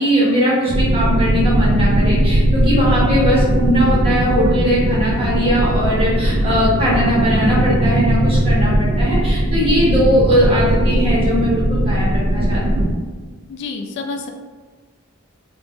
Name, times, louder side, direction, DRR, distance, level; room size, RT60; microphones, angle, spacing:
voice 1, 0.0-12.9, equal, 25° right, -6 dB, 0.8 m, -19 dB
sound 1, 0.7-12.9, right 1 dB, 40° right, 0.3 m, -18 dB
voice 2, 13.5-14.3, left 4 dB, 55° left, 4 dB, 0.3 m, -28 dB
2.5 x 2.1 x 3.2 m, 1.4 s
head